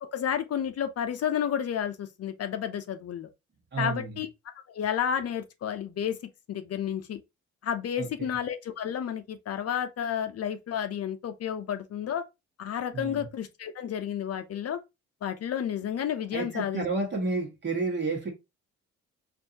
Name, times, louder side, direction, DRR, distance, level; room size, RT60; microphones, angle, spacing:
voice 1, 0.0-3.3 3.8-4.3 4.7-6.2 6.5-7.2 7.6-12.2 12.6-14.8 15.2-16.8, left 9 dB, 55° left, 0.7 m, -31 dB
voice 2, 3.7-4.2 8.0-8.1 12.9-13.3 16.3-18.3, right 3 dB, 35° right, 1.5 m, -30 dB
4.4 x 2.7 x 2.8 m
cardioid pair, 90°, 30 cm